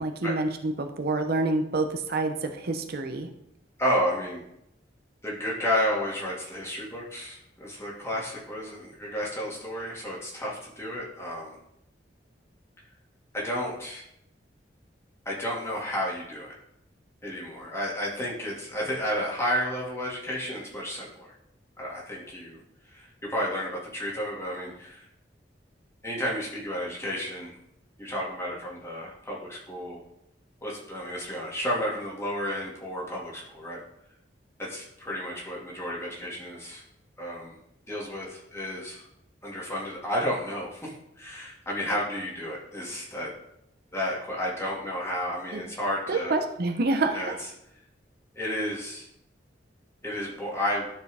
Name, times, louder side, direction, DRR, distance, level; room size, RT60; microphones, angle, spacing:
voice 1, 0.0-3.3 45.5-45.6 46.1-47.4, right 2 dB, 60° right, 5 dB, 0.7 m, -27 dB
voice 2, 3.8-4.4 5.2-11.6 13.3-14.0 15.3-16.5 17.2-21.3 21.8-22.6 22.9-25.1 26.0-27.5 28.0-30.0 30.6-33.8 34.6-36.8 37.2-37.5 37.9-39.1 39.4-43.3 43.9-46.3 47.1-47.3 48.3-49.1 50.0-50.9, equal, 15° left, -4 dB, 2.0 m, -32 dB
12.0 x 4.5 x 3.4 m, 0.79 s
head